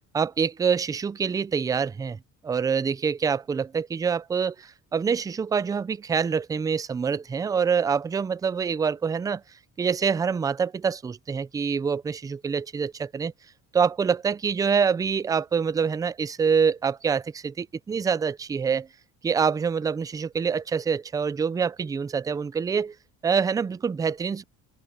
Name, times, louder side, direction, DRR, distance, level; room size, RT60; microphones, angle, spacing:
voice 1, 0.1-2.2 2.4-9.4 9.8-13.3 13.7-18.9 19.2-22.9 23.2-24.4, right 6 dB, 10° right, 0.3 m, -25 dB
cardioid pair, 150°, 32 cm